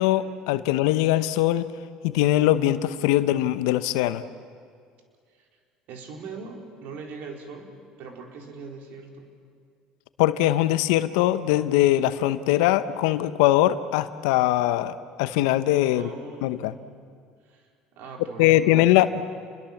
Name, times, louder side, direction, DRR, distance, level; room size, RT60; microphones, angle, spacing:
voice 1, 0.0-1.7 2.0-4.2 10.2-14.9 15.2-16.1 16.4-16.7 18.4-19.2, left 14 dB, 80° left, 13 dB, 0.9 m, -21 dB
voice 2, 5.9-9.3 16.0-17.0 17.5-19.2, right 4 dB, 70° right, 2 dB, 4.2 m, -41 dB
29.0 x 21.5 x 7.3 m, 2.1 s
supercardioid pair, 80°, 3 cm